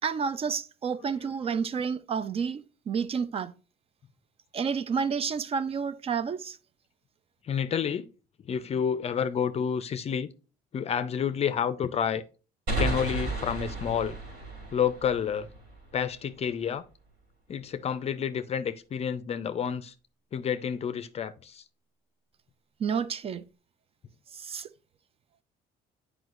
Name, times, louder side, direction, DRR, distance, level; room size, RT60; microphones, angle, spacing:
voice 1, 0.0-3.5 4.5-6.6 22.8-23.4 24.3-24.7, right 6 dB, 35° right, 0.3 m, -30 dB
voice 2, 7.4-8.1 8.5-10.3 10.7-12.2 12.8-14.2 14.7-15.5 15.9-16.8 17.5-19.9 20.3-21.6, left 8 dB, 40° left, 0.4 m, -29 dB
sound 1, 12.7-16.2, right 2 dB, 75° right, 3.0 m, -33 dB
7.8 x 4.9 x 2.4 m
cardioid pair, 110°, 17 cm